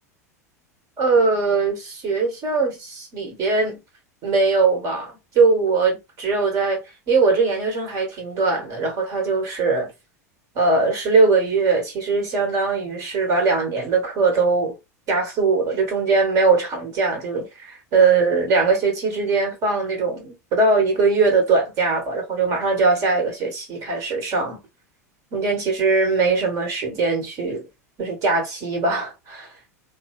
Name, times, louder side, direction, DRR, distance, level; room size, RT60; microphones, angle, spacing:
voice 1, 1.0-3.8 4.2-6.8 7.1-9.9 10.6-14.7 15.1-24.6 25.3-27.6 28.0-29.5, right 4 dB, 40° right, 1.8 m, -21 dB
3.7 x 2.4 x 3.3 m
figure-of-eight pair, 80°, 9 cm